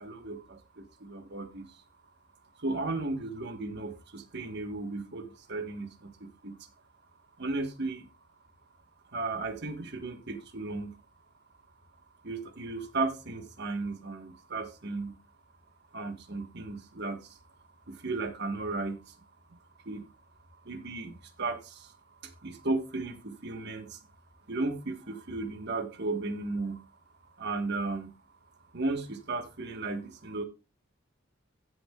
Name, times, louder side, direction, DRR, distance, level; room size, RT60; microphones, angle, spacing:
voice 1, 0.0-1.7 2.6-6.5 7.4-8.0 9.1-10.9 12.2-15.1 15.9-17.2 18.0-19.0 19.9-20.0 20.7-21.6 22.4-23.9 24.5-26.8 27.4-28.1 28.7-30.4, right 3 dB, 55° right, 6 dB, 1.4 m, -35 dB
16.0 x 6.6 x 2.3 m, 0.29 s
head